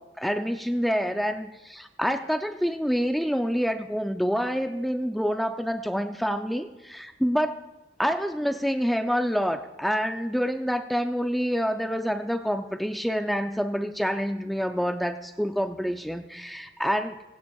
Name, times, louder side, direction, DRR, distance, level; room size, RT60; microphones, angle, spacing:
voice 1, 0.0-7.6 8.0-17.2, equal, ahead, 6 dB, 0.4 m, -27 dB
18.5 x 16.5 x 2.4 m, 1.1 s
head